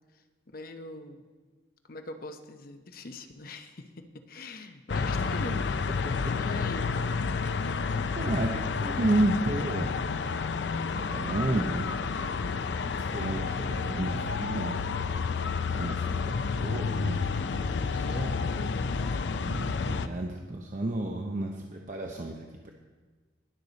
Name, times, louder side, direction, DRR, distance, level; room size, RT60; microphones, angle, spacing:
voice 1, 0.5-1.2 1.8-5.8 6.3-7.0 18.1-19.1, left 2 dB, 55° left, 7 dB, 0.8 m, -42 dB
sound 1, 4.9-20.1, left 5 dB, 70° left, 0.5 m, -30 dB
voice 2, 8.2-9.9 11.0-11.9 13.1-14.8 15.7-17.2 17.9-18.3 19.4-22.7, right 1 dB, 45° right, 2 dB, 0.8 m, -31 dB
20.0 x 6.7 x 4.0 m, 1.4 s
head